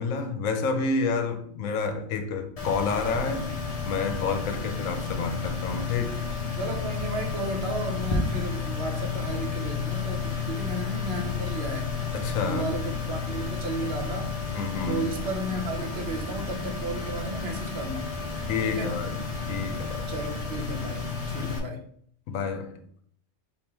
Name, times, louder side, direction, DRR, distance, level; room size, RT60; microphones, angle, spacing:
voice 1, 0.0-3.5 3.8-6.3 12.1-12.9 14.5-15.1 18.5-19.2 19.5-20.1 21.4-21.6 22.3-22.8, left 4 dB, 80° left, 1.0 m, -29 dB
sound 1, 2.6-21.6, left 4 dB, 35° left, 0.7 m, -32 dB
voice 2, 6.6-11.9 12.4-14.4 14.9-18.1 18.6-18.9 20.1-21.8, right 1 dB, 55° right, 0.9 m, -34 dB
3.6 x 2.5 x 4.4 m
omnidirectional pair, 1.4 m